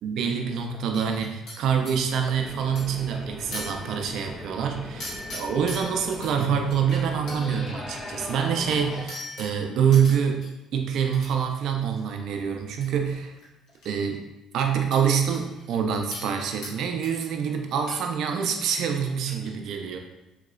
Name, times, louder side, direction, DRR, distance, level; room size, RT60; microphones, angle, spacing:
voice 1, 0.0-10.5 10.7-13.3 13.8-14.2 14.5-20.0, right 7 dB, 70° right, 4 dB, 0.4 m, -26 dB
sound 1, 0.9-2.0 2.8-3.1 3.5-4.3 5.0-6.3 6.7-7.8 9.1-10.5 11.1-11.3 11.6-12.0 12.8-12.9 13.2-13.9 14.1-14.2 14.9-15.8 16.1-16.8 17.0-17.4 17.7-18.3 18.5-18.8 19.1-19.5, left 1 dB, 75° left, 1.1 m, -40 dB
sound 2, 2.4-9.1, left 1 dB, 25° left, 0.5 m, -40 dB
3.0 x 2.8 x 2.4 m, 1.0 s
supercardioid pair, 70°, 0 cm